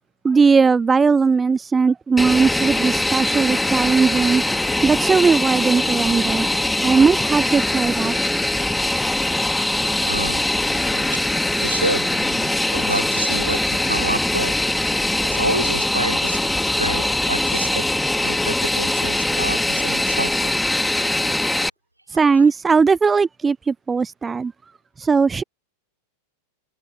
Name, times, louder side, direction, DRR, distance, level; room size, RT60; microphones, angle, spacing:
voice 1, 0.2-4.4 4.8-6.5 6.8-8.2 22.1-24.5 25.0-25.4, right 5 dB, 15° right, 0.5 m, -18 dB
Fixed-wing aircraft airplane, 2.2-21.7, left 1 dB, 5° left, 3.0 m, -22 dB
voice 2, 10.0-11.1 11.6-14.5 15.2-17.8 18.2-20.5 22.1-22.5, right 1 dB, 85° right, 5.1 m, -28 dB
open air
figure-of-eight pair, 90°, 0 cm